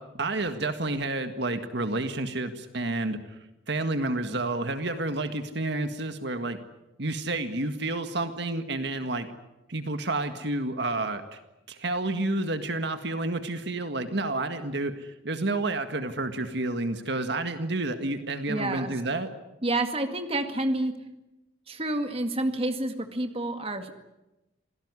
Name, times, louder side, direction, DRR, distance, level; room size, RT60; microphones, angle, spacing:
voice 1, 0.0-3.4 3.7-6.6 7.0-9.3 9.7-11.4 11.7-19.3, right 2 dB, 60° right, 8 dB, 1.8 m, -30 dB
voice 2, 18.5-18.9 19.6-20.9 21.7-24.0, right 2 dB, 30° right, 7 dB, 2.0 m, -29 dB
27.0 x 17.5 x 9.8 m, 0.98 s
head